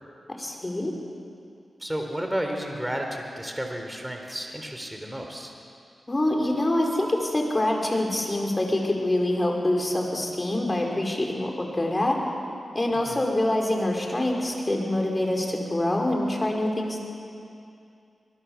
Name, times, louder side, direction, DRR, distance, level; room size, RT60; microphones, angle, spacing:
voice 1, 0.3-0.9 6.1-12.2 12.7-17.0, left 1 dB, 30° left, 0 dB, 5.1 m, -25 dB
voice 2, 1.8-5.5 12.9-13.3, equal, 10° right, 3 dB, 3.8 m, -32 dB
22.5 x 22.0 x 7.3 m, 2.4 s
cardioid pair, 50°, 0 cm